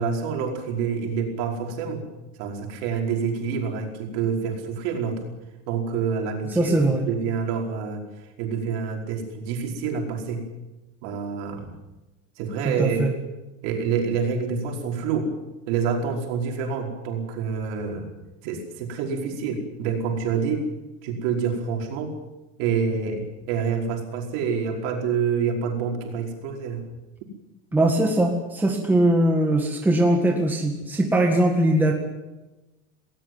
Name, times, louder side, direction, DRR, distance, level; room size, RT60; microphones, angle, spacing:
voice 1, 0.0-2.0 2.4-5.2 5.7-6.8 7.1-8.0 8.4-10.4 11.0-11.7 12.4-13.0 13.6-15.3 15.7-18.1 18.4-20.7 21.0-22.2 22.6-26.8 27.2-27.3, right 6 dB, 50° right, 2 dB, 5.0 m, -27 dB
voice 2, 6.5-7.1 12.6-13.1 27.7-31.9, right 1 dB, 5° right, 2 dB, 1.8 m, -21 dB
20.0 x 19.0 x 9.4 m, 1.0 s
supercardioid pair, 175°, 38 cm